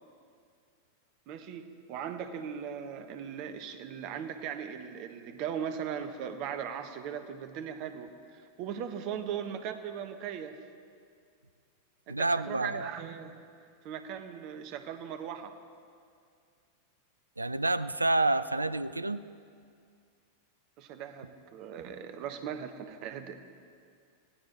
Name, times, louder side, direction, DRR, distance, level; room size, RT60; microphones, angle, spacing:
voice 1, 1.3-10.6 12.1-13.4 13.8-15.6 20.8-23.4, right 8 dB, 40° right, 8 dB, 1.2 m, -39 dB
voice 2, 12.1-12.9 17.4-19.2, right 2 dB, 80° right, 15 dB, 0.5 m, -28 dB
27.5 x 17.0 x 3.0 m, 2.2 s
figure-of-eight pair, 90°, 0 cm